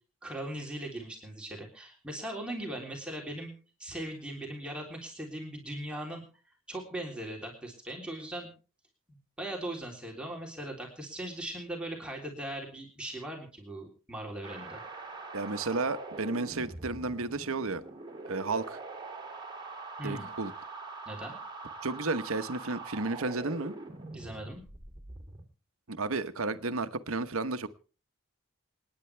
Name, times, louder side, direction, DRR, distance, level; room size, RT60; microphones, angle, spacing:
voice 1, 0.2-3.5 3.8-6.2 6.7-8.5 9.4-14.8 20.0-20.3 21.0-21.3 24.1-24.6, right 1 dB, 5° right, -1 dB, 3.4 m, -39 dB
sound 1, 14.4-25.4, right 3 dB, 20° right, 2.7 m, -43 dB
voice 2, 15.3-17.8 18.3-18.8 20.0-20.5 21.8-23.7 25.9-27.7, right 3 dB, 75° right, 10 dB, 1.1 m, -32 dB
27.5 x 9.9 x 3.4 m, 0.37 s
head